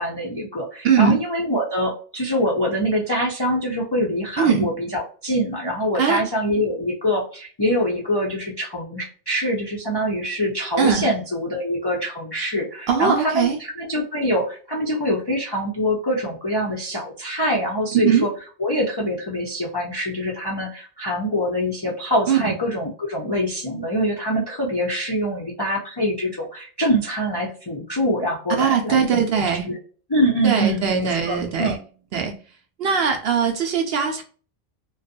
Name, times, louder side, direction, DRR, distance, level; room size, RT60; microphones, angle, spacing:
voice 1, 0.0-18.3 18.6-29.8 30.1-31.8, equal, 35° left, -2 dB, 0.4 m, -24 dB
voice 2, 0.8-1.2 4.4-4.7 5.9-6.2 10.8-11.1 12.9-13.6 18.0-18.3 22.3-22.4 28.6-29.7 30.4-31.8 32.1-32.3 32.8-34.2, right 7 dB, 65° right, 4 dB, 0.7 m, -20 dB
2.5 x 2.3 x 2.6 m, 0.40 s
omnidirectional pair, 1.2 m